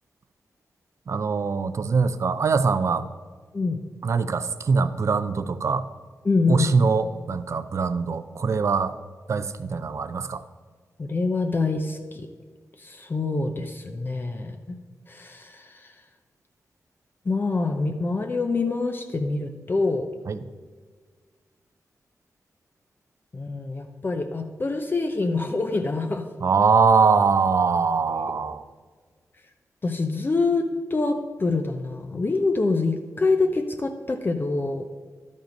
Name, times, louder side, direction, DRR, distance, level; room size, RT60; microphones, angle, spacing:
voice 1, 1.1-3.1 4.0-5.9 6.5-8.9 9.3-10.4 20.3-20.4 26.4-28.6, right 5 dB, 55° right, 12 dB, 0.5 m, -22 dB
voice 2, 6.2-6.7 11.0-12.3 12.8-14.8 15.1-15.9 17.3-20.1 23.3-26.3 28.1-28.3 29.8-34.8, left 3 dB, 35° left, 5 dB, 0.6 m, -26 dB
11.5 x 5.3 x 5.3 m, 1.5 s
wide cardioid pair, 95°, 6 cm